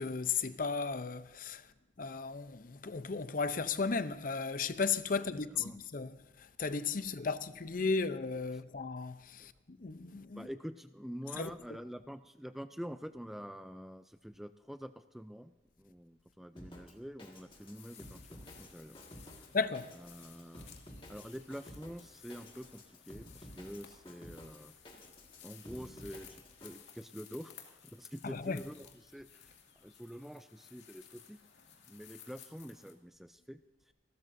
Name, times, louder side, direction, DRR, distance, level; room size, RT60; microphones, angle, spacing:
voice 1, 0.0-1.7 2.0-10.5 11.4-11.5 19.5-19.9 28.2-28.6, left 4 dB, 50° left, 0.6 m, -35 dB
voice 2, 5.2-5.8 9.4-9.5 10.3-19.0 19.3-19.5 19.9-20.7 21.1-25.0 25.4-31.4 31.9-33.9, equal, ahead, 0.3 m, -47 dB
Drum kit, 16.6-26.8, equal, 30° left, 1.8 m, -53 dB
sound 1, 17.5-32.9, left 8 dB, 80° left, 2.2 m, -57 dB
27.5 x 13.0 x 2.6 m
head